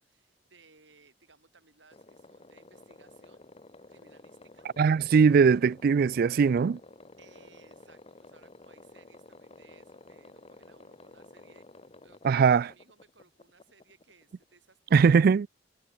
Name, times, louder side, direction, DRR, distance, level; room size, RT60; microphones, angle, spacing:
voice 1, 0.0-3.4 3.9-4.7 7.2-15.2, right 4 dB, 75° right, 7.5 m, -61 dB
sound 1, 1.9-14.5, left 2 dB, 30° left, 1.1 m, -53 dB
voice 2, 4.8-6.8 12.2-12.7 14.9-15.5, right 6 dB, 50° right, 0.3 m, -20 dB
head